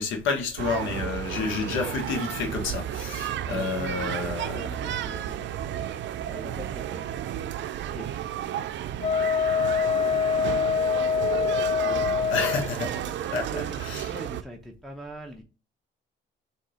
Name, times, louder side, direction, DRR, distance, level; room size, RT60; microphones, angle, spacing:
voice 1, 0.0-4.7 12.3-14.1, left 4 dB, 85° left, 1.1 m, -30 dB
sound 1, 0.6-14.4, right 11 dB, 65° right, 0.4 m, -32 dB
voice 2, 3.5-7.3 7.9-8.1 11.8-12.3 13.3-15.4, equal, ahead, 0.6 m, -43 dB
Wind instrument woodwind instrument, 9.0-12.7, left 6 dB, 35° left, 0.4 m, -24 dB
3.8 x 2.8 x 4.7 m
cardioid pair, 90°, 20 cm